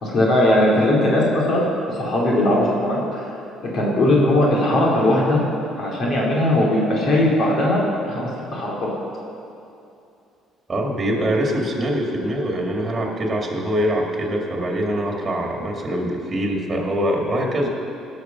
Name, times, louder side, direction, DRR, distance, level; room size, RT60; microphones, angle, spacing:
voice 1, 0.0-1.6 1.9-3.3 3.6-5.4 5.8-8.9, left 1 dB, 50° left, -4 dB, 2.7 m, -19 dB
voice 2, 10.7-17.7, equal, 25° right, 0 dB, 2.1 m, -23 dB
18.0 x 6.5 x 5.9 m, 2.7 s
cardioid pair, 110°, 0 cm